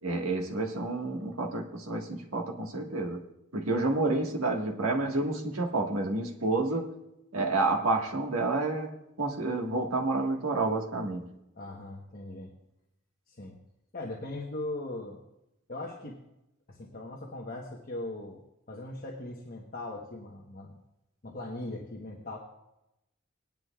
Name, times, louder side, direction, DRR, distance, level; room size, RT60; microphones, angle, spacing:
voice 1, 0.0-3.2 3.5-6.9 7.3-8.9 9.2-11.3, right 2 dB, 85° right, 1 dB, 1.6 m, -29 dB
voice 2, 11.5-12.5 13.3-13.6 13.9-15.2 15.7-16.2 16.7-18.4 18.7-20.8 21.2-22.4, left 2 dB, 40° left, -1 dB, 1.1 m, -39 dB
19.0 x 10.5 x 2.4 m, 0.88 s
head